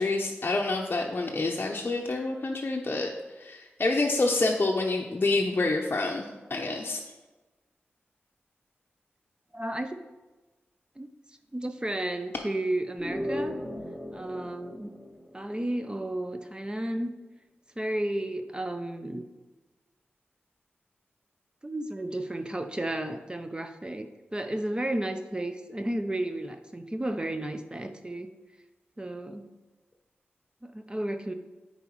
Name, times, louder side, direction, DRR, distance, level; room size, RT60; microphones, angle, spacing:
voice 1, 0.0-3.1 3.4-7.0, left 2 dB, 45° left, 0 dB, 0.6 m, -27 dB
voice 2, 9.5-10.0 11.0-11.1 11.5-13.6 14.1-14.9 15.3-17.1 17.8-19.2 21.6-28.3 29.0-29.5 30.6-31.3, right 1 dB, 20° right, 7 dB, 0.5 m, -33 dB
sound 1, 13.0-15.9, equal, ahead, 0.9 m, -36 dB
9.4 x 4.1 x 3.0 m, 1.2 s
cardioid pair, 45°, 4 cm